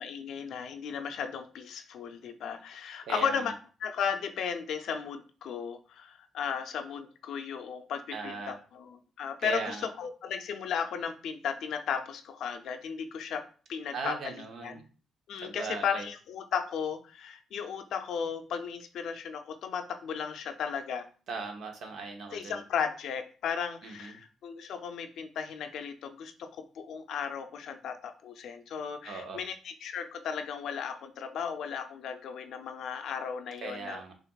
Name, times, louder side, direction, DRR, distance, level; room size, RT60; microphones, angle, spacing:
voice 1, 0.0-3.5 3.8-13.4 13.7-14.4 14.6-14.7 15.3-21.1 22.3-34.0, left 7 dB, 75° left, 7 dB, 0.5 m, -35 dB
voice 2, 3.1-3.4 8.1-8.6 9.4-9.9 13.9-14.8 15.4-16.1 21.3-22.6 23.8-24.2 29.0-29.4 33.6-34.1, right 4 dB, 65° right, 4 dB, 0.9 m, -38 dB
6.5 x 2.5 x 2.3 m, 0.39 s
cardioid pair, 90°, 0 cm